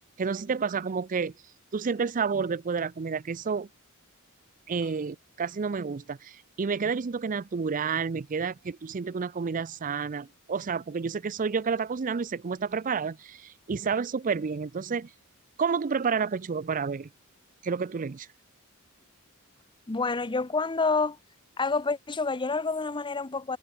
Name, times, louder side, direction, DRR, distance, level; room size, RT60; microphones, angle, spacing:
voice 1, 0.2-1.3 1.7-3.7 4.7-15.1 15.6-17.1 17.6-18.3, right 5 dB, 40° right, 0.5 m, -30 dB
voice 2, 19.9-21.2 21.6-23.6, left 4 dB, 20° left, 0.7 m, -28 dB
head